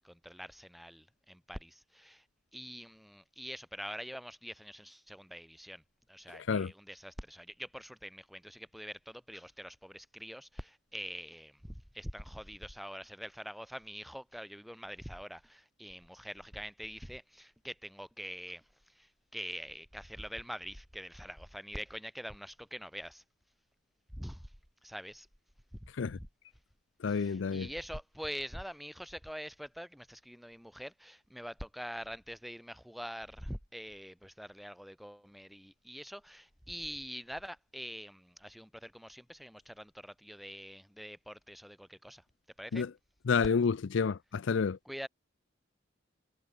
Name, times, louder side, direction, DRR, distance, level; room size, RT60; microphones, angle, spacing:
voice 1, 0.0-2.3 2.5-23.2 24.1-24.6 24.8-25.3 25.7-26.3 27.1-42.2 42.6-42.9 44.8-45.1, equal, ahead, 6.1 m, -45 dB
voice 2, 27.0-27.7 42.7-42.9 43.3-44.8, left 5 dB, 70° left, 0.5 m, -29 dB
head